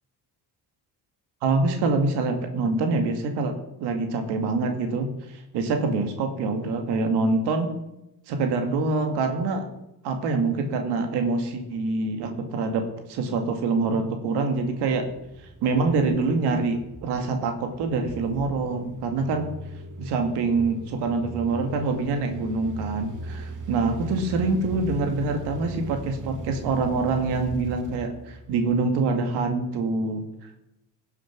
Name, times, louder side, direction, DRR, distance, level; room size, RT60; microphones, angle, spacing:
voice 1, 1.4-7.7 8.3-9.7 10.0-12.8 13.1-15.1 15.6-19.5 20.0-30.2, right 3 dB, 80° right, 5 dB, 2.0 m, -25 dB
sound 1, 14.7-28.8, right 1 dB, 50° right, 2.0 m, -39 dB
16.5 x 7.2 x 6.0 m, 0.88 s
supercardioid pair, 75°, 40 cm